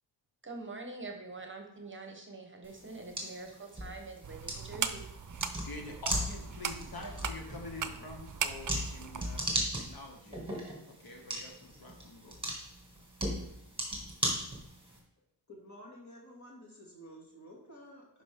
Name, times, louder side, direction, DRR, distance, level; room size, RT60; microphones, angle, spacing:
voice 1, 0.4-5.0, right 3 dB, 30° right, 3 dB, 1.0 m, -45 dB
sound 1, 2.6-15.0, right 1 dB, 15° right, 2.0 m, -38 dB
sound 2, 4.2-9.5, right 7 dB, 50° right, 0.6 m, -39 dB
voice 2, 5.6-10.4 10.9-12.4, left 3 dB, 60° left, 2 dB, 1.2 m, -46 dB
voice 3, 15.5-18.2, equal, 40° left, -2 dB, 2.5 m, -51 dB
11.0 x 5.1 x 3.6 m, 0.80 s
wide cardioid pair, 180°, 41 cm